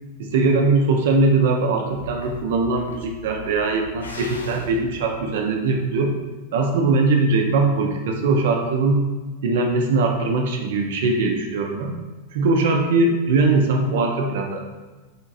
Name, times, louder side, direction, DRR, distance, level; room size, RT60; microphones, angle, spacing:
voice 1, 0.2-6.1 6.5-9.0 9.4-12.0 12.3-14.6, right 3 dB, 55° right, 3 dB, 0.5 m, -21 dB
sound 1, 1.9-6.1, left 1 dB, 75° left, 0.4 m, -38 dB
3.5 x 2.8 x 2.6 m, 1.3 s
figure-of-eight pair, 90°, 0 cm